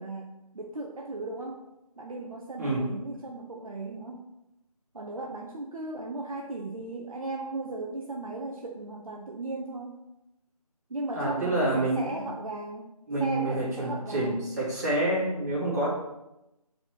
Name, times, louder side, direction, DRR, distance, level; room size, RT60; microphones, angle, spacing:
voice 1, 0.0-1.6 2.0-4.3 4.9-10.0 10.9-12.9 13.2-14.4, right 2 dB, 60° right, 0 dB, 0.9 m, -36 dB
voice 2, 11.1-12.2 13.1-15.9, right 1 dB, 25° right, -7 dB, 2.3 m, -28 dB
4.9 x 4.3 x 5.9 m, 0.91 s
figure-of-eight pair, 165°, 20 cm